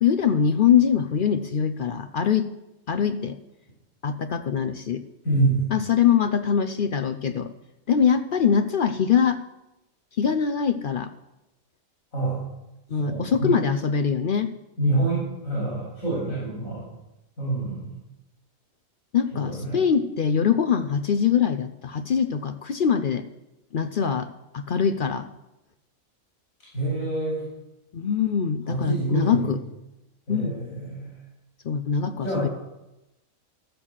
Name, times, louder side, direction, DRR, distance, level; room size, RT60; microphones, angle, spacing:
voice 1, 0.0-2.5 2.9-3.4 4.0-5.0 5.7-7.5 7.9-9.4 10.2-11.1 12.9-14.5 19.1-23.2 23.7-25.3 27.9-29.6 30.3-30.6 31.6-32.5, left 7 dB, 55° left, 10 dB, 0.6 m, -23 dB
voice 2, 5.2-5.7 12.1-12.4 13.0-13.6 14.8-16.9 17.4-17.9 19.3-19.8 26.7-27.4 28.7-29.5 30.3-31.1 32.2-32.5, right 2 dB, 80° left, -6 dB, 4.8 m, -26 dB
13.5 x 7.4 x 6.4 m, 0.93 s
omnidirectional pair, 1.4 m